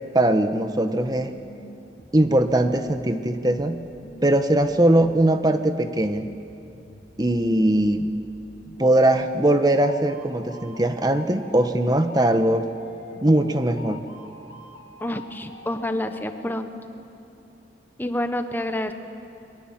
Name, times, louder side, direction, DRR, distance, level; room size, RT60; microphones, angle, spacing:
voice 1, 0.1-1.3 2.1-3.8 4.2-6.3 7.2-8.1 8.8-12.7 13.2-14.0, right 1 dB, 25° right, 8 dB, 1.2 m, -20 dB
sound 1, 1.0-17.0, left 2 dB, 90° left, 2.9 m, -45 dB
voice 2, 15.0-16.7 18.0-18.9, left 1 dB, 10° left, 7 dB, 1.3 m, -28 dB
29.0 x 23.0 x 7.5 m, 2.9 s
head